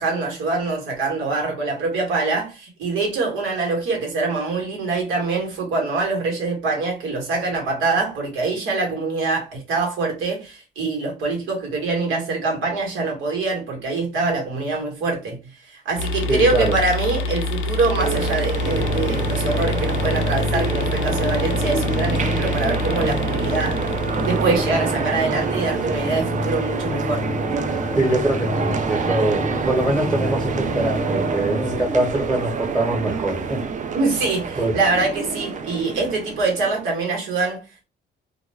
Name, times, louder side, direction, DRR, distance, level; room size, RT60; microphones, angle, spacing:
voice 1, 0.0-23.8 24.3-27.3 33.9-37.8, right 3 dB, 85° right, 1.2 m, -24 dB
sound 1, 16.0-25.4, left 2 dB, 85° left, 0.4 m, -27 dB
voice 2, 16.3-16.7 27.9-33.6 34.6-34.8, right 2 dB, 10° right, 0.9 m, -23 dB
sound 2, 18.0-37.0, right 5 dB, 40° right, 0.4 m, -27 dB
sound 3, 18.6-31.7, left 1 dB, 20° left, 0.6 m, -29 dB
2.3 x 2.1 x 3.2 m
cardioid pair, 90°, 20 cm